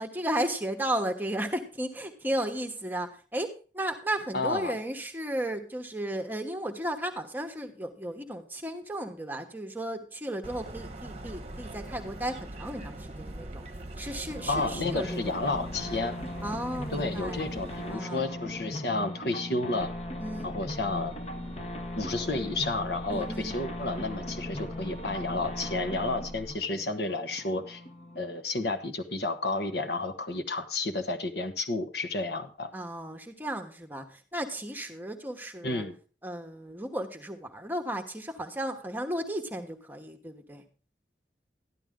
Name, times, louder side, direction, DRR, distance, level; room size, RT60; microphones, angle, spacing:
voice 1, 0.0-3.5 3.7-13.6 14.0-15.5 16.4-17.5 17.9-18.3 20.2-20.5 23.1-23.6 32.7-35.8 36.2-40.6, right 1 dB, 10° right, 6 dB, 1.1 m, -34 dB
voice 2, 4.3-4.8 14.5-16.2 16.9-19.9 20.4-21.1 21.9-27.8 28.2-32.7 35.6-35.9, left 2 dB, 60° left, 7 dB, 1.3 m, -31 dB
sound 1, 10.4-17.9, right 1 dB, 35° right, 1.0 m, -42 dB
sound 2, 14.3-28.4, left 1 dB, 35° left, 1.2 m, -39 dB
sound 3, 19.8-26.5, equal, 15° left, 1.2 m, -45 dB
13.0 x 11.0 x 3.7 m, 0.38 s
head